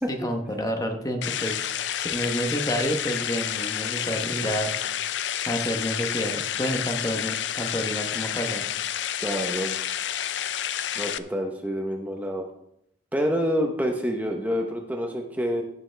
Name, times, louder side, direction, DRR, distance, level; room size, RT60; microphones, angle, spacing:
voice 1, 0.1-4.7 5.5-8.7, equal, 20° left, 4 dB, 1.1 m, -29 dB
sound 1, 1.2-11.2, left 10 dB, 75° left, 0.5 m, -29 dB
voice 2, 9.2-9.7 10.9-12.4 13.1-15.6, equal, 10° right, 2 dB, 0.9 m, -27 dB
16.0 x 7.0 x 3.4 m, 0.76 s
head